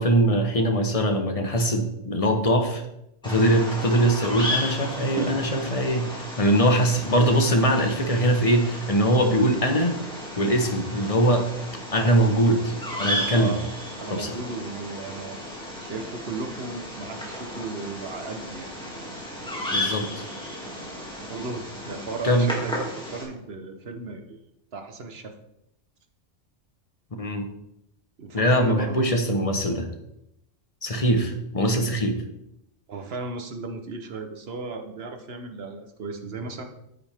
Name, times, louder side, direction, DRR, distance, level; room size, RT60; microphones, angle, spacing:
voice 1, 0.0-2.8 3.2-9.9 10.4-11.5 11.9-12.7 13.0-13.5 14.1-14.3 19.7-20.2 22.2-22.5 27.2-27.4 28.3-29.9 30.8-32.2, right 1 dB, 30° left, 4 dB, 1.2 m, -22 dB
Bird vocalization bird call bird song, 3.2-23.2, left 1 dB, 5° left, 2.4 m, -34 dB
voice 2, 13.1-13.6 14.0-15.4 15.8-18.7 21.2-24.4 24.7-25.3 28.2-29.1 32.9-36.7, right 3 dB, 55° right, 6 dB, 1.3 m, -35 dB
9.5 x 8.8 x 3.6 m, 0.81 s
omnidirectional pair, 1.3 m